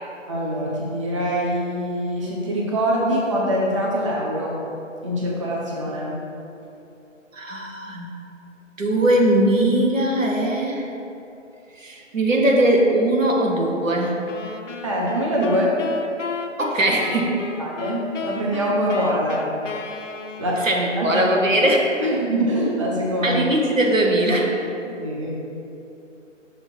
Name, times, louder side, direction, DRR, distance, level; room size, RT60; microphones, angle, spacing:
voice 1, 0.3-4.6 5.0-6.2 14.8-15.8 17.6-19.6 20.4-20.6 21.0-21.4 22.0-23.5 24.8-25.4, equal, 25° right, -4 dB, 0.5 m, -24 dB
voice 2, 7.3-8.1 8.8-10.9 11.7-14.2 16.6-17.4 20.6-22.0 23.2-24.6, right 1 dB, 80° right, 0 dB, 1.2 m, -20 dB
sound 1, 14.3-20.9, left 4 dB, 70° left, 0.6 m, -34 dB
6.4 x 3.2 x 5.9 m, 2.8 s
figure-of-eight pair, 145°, 38 cm